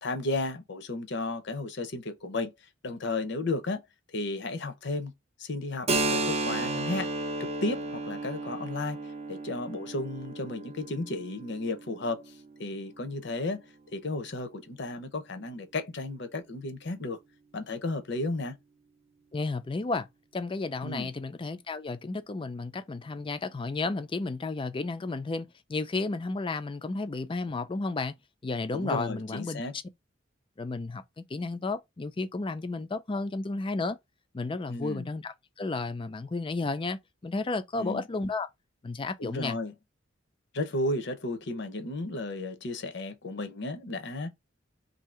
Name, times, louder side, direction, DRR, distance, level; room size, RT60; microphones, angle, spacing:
voice 1, 0.0-2.5 2.8-3.8 4.1-5.1 5.4-7.1 7.4-12.2 12.6-13.6 13.9-17.2 17.5-18.6 20.8-21.1 28.7-29.7 34.7-35.1 37.8-38.0 39.2-39.7 40.5-44.3, left 2 dB, 65° left, 0.8 m, -33 dB
Keyboard (musical), 5.9-13.2, right 2 dB, 35° right, 0.5 m, -33 dB
voice 2, 19.3-20.1 20.3-28.1 28.4-29.6 30.6-34.0 34.3-38.5 38.8-39.6, left 3 dB, 25° left, 0.4 m, -32 dB
2.8 x 2.7 x 4.3 m
head